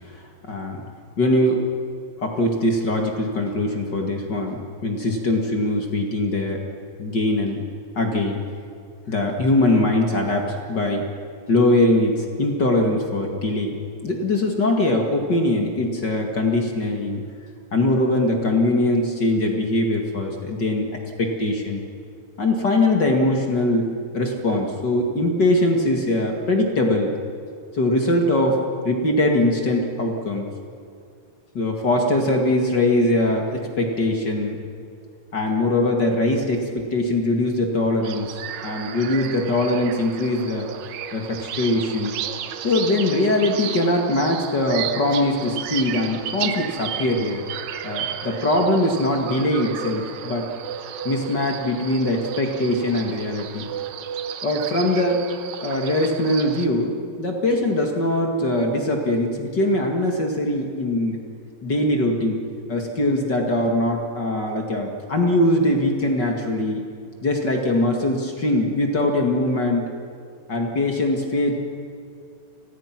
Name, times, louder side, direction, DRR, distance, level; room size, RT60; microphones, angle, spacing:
voice 1, 0.1-0.8 1.2-1.6 2.2-6.6 7.0-7.6 8.0-8.4 9.1-11.0 11.5-13.7 14.0-17.2 17.7-20.9 21.2-21.8 22.4-27.1 27.7-30.5 31.5-34.6 35.3-38.3 38.6-40.7 41.1-42.1 42.6-47.4 47.8-50.5 51.0-53.7 54.4-55.3 55.6-61.2 61.6-62.4 62.7-66.8 67.2-69.9 70.5-71.5, left 1 dB, 35° left, 2 dB, 2.2 m, -22 dB
sound 1, 38.0-56.7, right 9 dB, 70° right, 1.9 m, -33 dB
30.0 x 20.0 x 6.0 m, 2.4 s
omnidirectional pair, 4.1 m